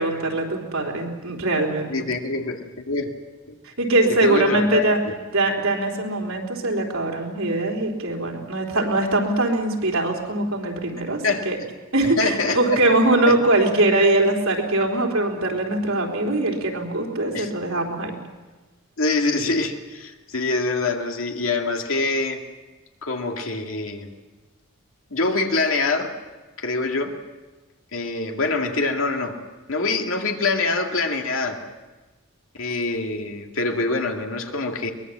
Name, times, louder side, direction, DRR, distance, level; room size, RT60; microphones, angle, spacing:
voice 1, 0.0-2.1 3.6-5.0 5.3-11.6 11.9-18.1, right 2 dB, 80° right, 1 dB, 3.9 m, -22 dB
voice 2, 1.9-3.1 3.5-3.6 4.1-5.1 11.2-11.5 12.0-12.8 13.3-13.4 17.3-17.5 19.0-22.4 23.0-24.1 25.1-26.1 26.6-27.2 27.9-29.4 29.7-31.6 32.5-34.9, left 3 dB, 70° left, 3 dB, 2.2 m, -25 dB
23.0 x 20.5 x 7.5 m, 1.2 s
head